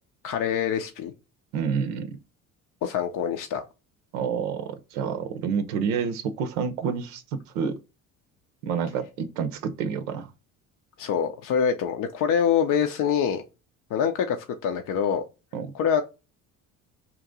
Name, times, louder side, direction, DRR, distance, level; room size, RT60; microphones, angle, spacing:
voice 1, 0.2-1.1 2.8-3.6 11.0-13.4 13.9-14.4 14.6-15.2 15.7-16.0, left 8 dB, 55° left, 0.6 m, -25 dB
voice 2, 1.5-2.1 4.1-7.8 8.6-10.3 15.5-15.7, right 6 dB, 80° right, 0.6 m, -28 dB
2.9 x 2.5 x 3.6 m
hypercardioid pair, 65°, 40 cm